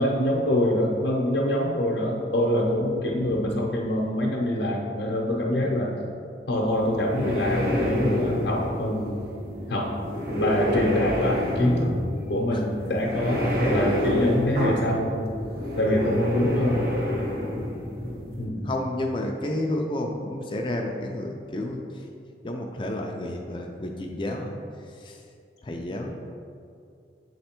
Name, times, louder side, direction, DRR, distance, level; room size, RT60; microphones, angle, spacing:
voice 1, 0.0-5.9 6.5-9.3 9.7-9.9 10.3-11.9 12.3-15.2 15.8-16.9 18.4-18.7, left 1 dB, 70° left, -1 dB, 0.7 m, -25 dB
voice 2, 3.2-3.6 9.8-10.1 12.5-12.6 15.7-15.8 17.3-17.6 18.6-21.9 22.4-24.6 25.0-25.2 25.6-26.1, left 1 dB, 30° left, 2 dB, 0.4 m, -31 dB
sound 1, 6.7-18.4, left 1 dB, 55° right, 1.4 m, -28 dB
7.5 x 3.2 x 4.4 m, 2.3 s
head